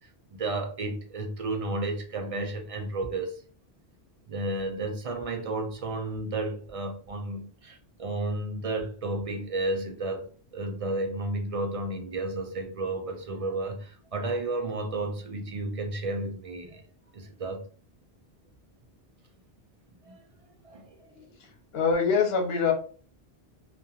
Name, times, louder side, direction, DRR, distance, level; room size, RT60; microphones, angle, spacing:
voice 1, 0.3-3.4 4.3-16.8 17.1-17.6 20.0-20.2 20.6-21.1, right 2 dB, 45° right, 0.5 m, -32 dB
voice 2, 21.2-21.5 21.7-22.7, left 5 dB, 70° left, 1.0 m, -25 dB
2.8 x 2.3 x 2.3 m
omnidirectional pair, 1.1 m